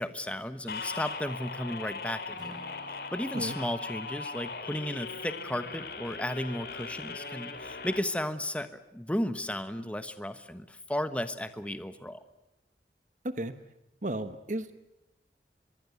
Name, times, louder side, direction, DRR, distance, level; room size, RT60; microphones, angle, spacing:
voice 1, 0.0-2.6 3.1-12.2, left 1 dB, 5° left, 10 dB, 1.2 m, -34 dB
sound 1, 0.7-8.0, left 4 dB, 60° left, 3.0 m, -39 dB
Acoustic guitar / Strum, 2.4-6.4, equal, 25° right, 2.8 m, -54 dB
voice 2, 13.2-13.5 14.0-14.7, right 1 dB, 45° right, 11 dB, 1.3 m, -33 dB
24.0 x 23.0 x 8.3 m, 0.92 s
head